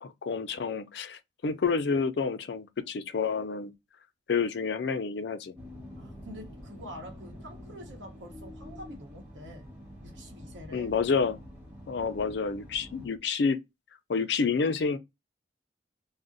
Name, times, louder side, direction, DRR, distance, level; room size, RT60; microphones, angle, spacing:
voice 1, 0.0-3.7 4.3-5.5 10.7-11.4 11.9-13.6 14.1-15.0, left 5 dB, 65° left, 0.4 m, -29 dB
sound 1, 5.6-13.1, equal, 10° right, 1.1 m, -47 dB
voice 2, 6.0-9.7 10.0-10.9, equal, 85° right, 0.9 m, -46 dB
2.4 x 2.0 x 3.7 m
head